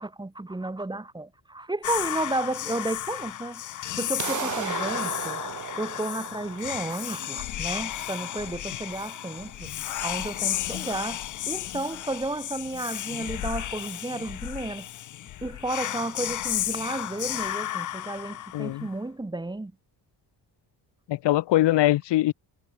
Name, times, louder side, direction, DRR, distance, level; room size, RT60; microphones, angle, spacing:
voice 1, 0.0-5.4 5.7-9.7 10.0-11.2 11.5-14.9 15.4-19.7, right 2 dB, 10° right, 2.9 m, -32 dB
Whispering, 1.8-19.0, left 13 dB, 45° left, 0.5 m, -33 dB
sound 1, 4.2-10.2, right 10 dB, 45° right, 1.0 m, -37 dB
voice 2, 18.5-18.9 21.1-22.3, left 15 dB, 75° left, 0.9 m, -22 dB
wide cardioid pair, 160°, 42 cm